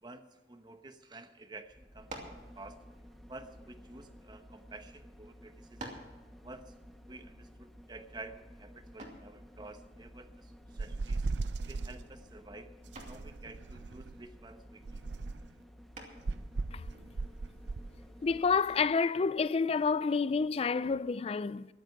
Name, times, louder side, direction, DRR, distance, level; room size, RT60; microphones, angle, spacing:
voice 1, 0.0-2.8 3.3-6.0 6.4-6.7 7.0-11.3 11.7-12.7 13.0-15.0, right 2 dB, 25° right, 1.0 m, -50 dB
sound 1, 1.6-19.0 19.4-19.5, equal, ahead, 0.8 m, -54 dB
sound 2, 2.1-2.5 3.4-4.6 5.2-5.3 5.8-6.2 9.0-9.3 11.2-11.6 12.0-12.3 12.9-13.3 15.9-16.4, right 1 dB, 45° right, 2.6 m, -47 dB
sound 3, 10.8-12.0 12.9-14.2 14.8-15.5 16.2-17.9, right 3 dB, 75° right, 0.5 m, -37 dB
voice 2, 18.2-21.7, left 5 dB, 35° left, 0.3 m, -29 dB
14.0 x 12.0 x 5.9 m
head